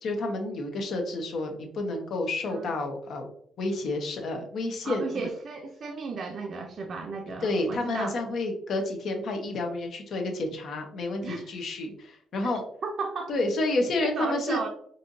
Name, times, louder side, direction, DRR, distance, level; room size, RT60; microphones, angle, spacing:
voice 1, 0.0-3.3 3.6-5.0 7.4-12.6 13.3-14.6, left 2 dB, 65° left, 3 dB, 0.9 m, -30 dB
voice 2, 4.8-8.2 11.2-11.5 12.5-13.3 14.0-14.7, right 4 dB, 55° right, 2 dB, 0.5 m, -34 dB
4.4 x 2.7 x 2.6 m, 0.63 s
cardioid pair, 90°, 0 cm